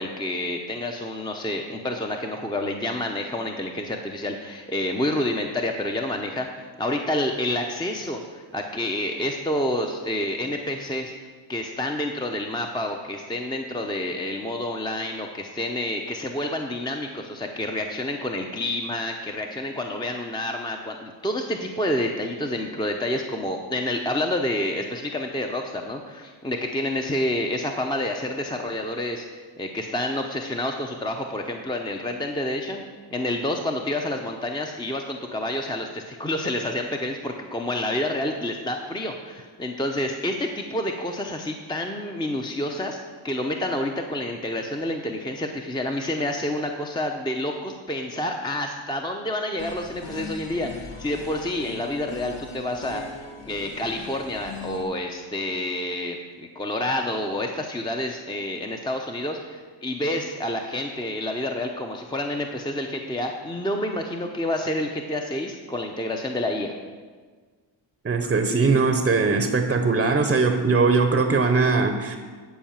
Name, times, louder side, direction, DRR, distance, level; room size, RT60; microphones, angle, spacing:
voice 1, 0.0-6.5 6.8-11.1 11.5-32.8 33.1-43.0 43.2-66.7, left 1 dB, 10° left, 3 dB, 0.6 m, -28 dB
sound 1, 49.6-54.8, left 3 dB, 85° left, 1.5 m, -39 dB
voice 2, 68.0-72.2, right 4 dB, 25° right, 7 dB, 0.7 m, -20 dB
10.5 x 4.7 x 7.2 m, 1.5 s
cardioid pair, 95°, 46 cm